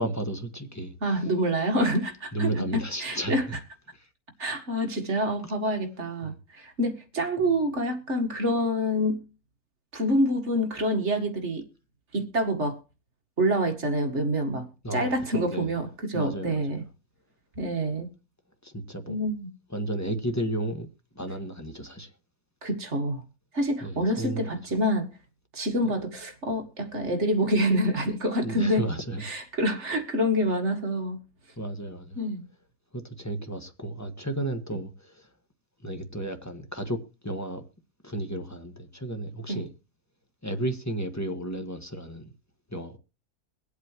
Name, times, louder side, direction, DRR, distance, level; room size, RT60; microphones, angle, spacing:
voice 1, 0.0-0.9 2.3-3.6 4.0-4.1 5.4-5.5 6.2-6.3 14.8-15.8 16.1-16.8 18.6-19.2 19.7-20.9 21.1-22.1 23.8-24.5 25.8-25.9 28.4-29.2 31.6-32.2 32.9-35.3 35.8-37.6 38.0-39.7 40.4-42.3 42.7-43.0, right 1 dB, 10° left, 1.3 m, -33 dB
voice 2, 1.0-3.4 4.4-9.2 9.9-11.7 12.1-12.8 13.4-16.8 17.6-18.1 19.1-19.5 22.6-23.2 23.5-25.0 25.5-28.9 29.2-31.2 32.2-32.4 39.5-39.6, equal, 45° right, 2.2 m, -27 dB
23.0 x 8.2 x 3.0 m
omnidirectional pair, 1.8 m